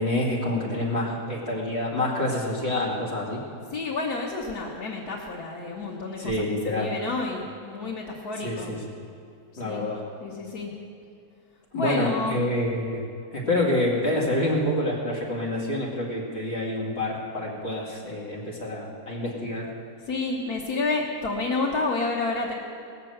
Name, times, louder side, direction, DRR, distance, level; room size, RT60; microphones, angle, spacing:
voice 1, 0.0-3.4 6.2-6.9 8.4-8.8 9.6-10.0 11.7-13.0 13.3-19.7, left 1 dB, 45° left, -3 dB, 2.5 m, -27 dB
voice 2, 3.7-6.3 6.6-8.8 9.6-9.8 10.2-10.7 11.7-12.4 20.1-22.5, left 3 dB, 85° left, -3 dB, 1.8 m, -29 dB
18.5 x 6.7 x 7.9 m, 2.5 s
omnidirectional pair, 1.6 m